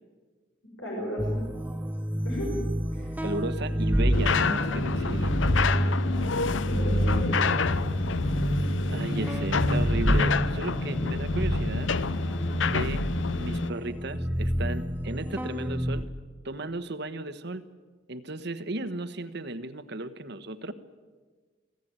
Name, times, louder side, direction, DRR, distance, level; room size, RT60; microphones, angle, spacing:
voice 1, 0.8-1.4 2.2-2.6 2.9-3.1 5.7-5.9 6.6-7.5 9.2-9.3, equal, 85° left, -3 dB, 6.1 m, -34 dB
sound 1, 1.2-16.0, equal, 10° right, 0.9 m, -28 dB
voice 2, 3.2-5.3 8.9-11.9 12.7-13.1 13.4-16.1 16.4-17.6 18.1-20.7, right 2 dB, 60° right, 11 dB, 1.2 m, -35 dB
sound 2, 4.1-13.7, left 4 dB, 70° left, 0.7 m, -28 dB
26.0 x 16.5 x 8.9 m, 1.4 s
head